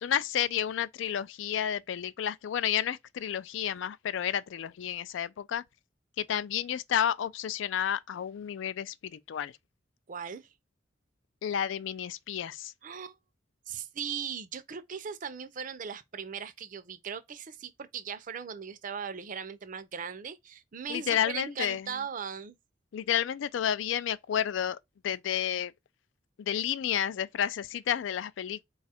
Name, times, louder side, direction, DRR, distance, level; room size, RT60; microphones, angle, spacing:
voice 1, 0.0-5.6 6.2-9.5 11.4-12.7 20.9-21.9 22.9-24.8 25.0-25.7 26.4-28.6, left 9 dB, 75° left, 0.3 m, -31 dB
voice 2, 10.1-10.5 12.8-13.2 13.7-22.6, right 7 dB, 45° right, 0.5 m, -38 dB
4.1 x 2.4 x 4.1 m
head